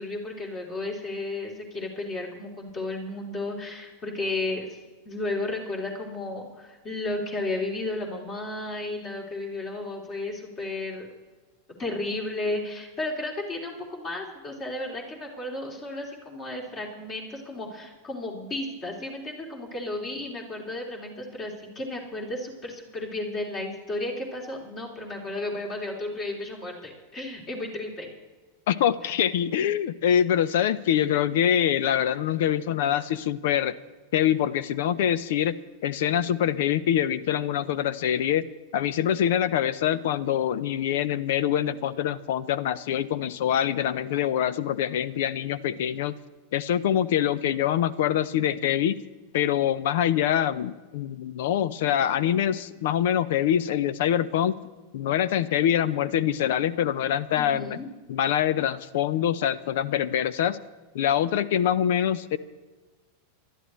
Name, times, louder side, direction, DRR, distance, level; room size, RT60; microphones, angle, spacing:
voice 1, 0.0-4.8 5.1-11.1 11.8-28.1 29.0-29.1 57.4-57.9, left 2 dB, 35° left, -1 dB, 3.4 m, -33 dB
voice 2, 28.7-33.8 34.1-35.5 35.8-38.5 38.7-46.2 46.5-49.0 49.3-54.6 54.9-57.8 58.1-60.6 60.9-62.4, left 10 dB, 65° left, 18 dB, 0.6 m, -24 dB
27.0 x 12.0 x 3.2 m, 1.3 s
hypercardioid pair, 95°, 0 cm